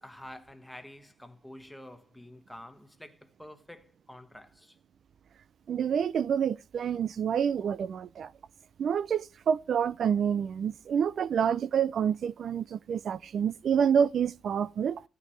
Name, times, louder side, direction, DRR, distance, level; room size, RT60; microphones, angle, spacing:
voice 1, 0.0-4.8, left 1 dB, 5° left, 1.3 m, -48 dB
voice 2, 5.7-8.3 8.8-15.0, right 8 dB, 60° right, 0.4 m, -28 dB
14.0 x 9.3 x 3.2 m
cardioid pair, 90°, 0 cm